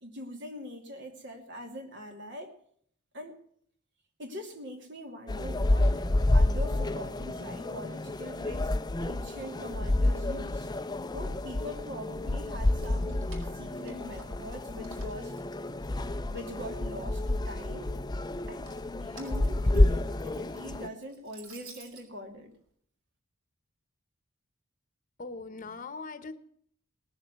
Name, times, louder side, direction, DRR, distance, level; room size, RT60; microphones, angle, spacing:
voice 1, 0.0-2.5 3.1-3.4 4.2-8.7 9.0-10.7 11.1-15.3 16.3-17.9 18.5-18.6 19.0-22.5, equal, 60° right, 3 dB, 2.6 m, -43 dB
sound 1, 5.3-20.9, left 1 dB, 20° left, 0.6 m, -29 dB
Keys jangling, 12.8-14.6 14.8-16.5 16.9-17.6 18.4-22.1, right 3 dB, 85° right, 4.7 m, -53 dB
voice 2, 25.2-26.3, left 3 dB, 40° left, 10 dB, 1.0 m, -40 dB
18.5 x 7.2 x 8.1 m, 0.62 s
head